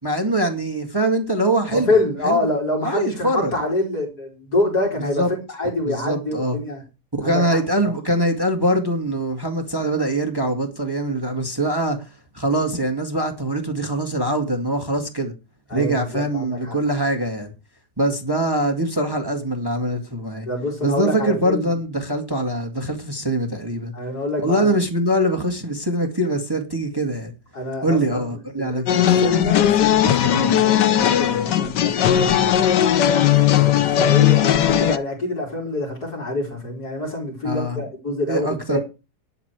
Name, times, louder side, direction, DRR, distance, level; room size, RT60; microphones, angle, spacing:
voice 1, 0.0-1.9 2.2-2.5 2.8-3.5 5.2-5.3 5.9-6.6 7.2-12.1 12.3-15.3 15.7-17.5 18.0-20.5 20.8-23.9 24.4-27.3 27.8-29.2 37.4-37.8 38.3-38.8, right 1 dB, 15° right, 2.0 m, -23 dB
voice 2, 1.7-6.8 7.2-7.9 15.7-16.8 20.5-21.7 23.9-24.7 27.5-32.7 33.4-38.8, left 2 dB, 65° left, 5.4 m, -26 dB
sound 1, 28.9-35.0, left 10 dB, 85° left, 1.5 m, -17 dB
12.5 x 9.9 x 4.7 m
omnidirectional pair, 1.8 m